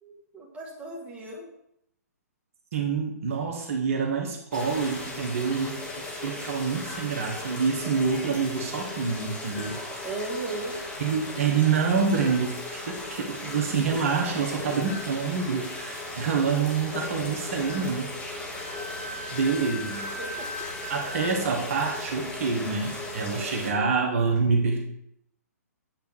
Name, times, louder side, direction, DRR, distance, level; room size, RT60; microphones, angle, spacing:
voice 1, 0.0-1.5 10.0-10.8 19.5-19.7 20.2-20.5 23.3-23.9, right 2 dB, 15° right, -3 dB, 2.0 m, -37 dB
voice 2, 2.7-5.8 6.2-9.8 11.0-18.1 19.3-20.1 20.9-24.8, right 5 dB, 55° right, 1 dB, 1.3 m, -27 dB
sound 1, 4.5-23.7, left 2 dB, 15° left, 1.7 m, -37 dB
Wind instrument woodwind instrument, 18.5-21.3, left 1 dB, 35° left, 2.9 m, -38 dB
8.7 x 3.5 x 6.1 m, 0.78 s
hypercardioid pair, 130°, 9 cm